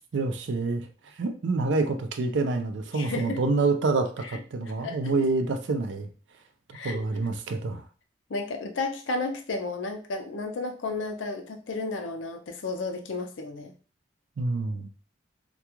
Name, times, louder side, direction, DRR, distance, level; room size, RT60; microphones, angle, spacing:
voice 1, 0.1-6.1 6.8-7.8 14.4-14.9, right 3 dB, 75° right, 7 dB, 0.4 m, -27 dB
voice 2, 2.9-3.4 4.2-4.3 4.8-5.2 6.7-7.0 8.3-13.7, left 3 dB, 85° left, 5 dB, 0.5 m, -33 dB
2.3 x 2.2 x 2.9 m, 0.38 s
head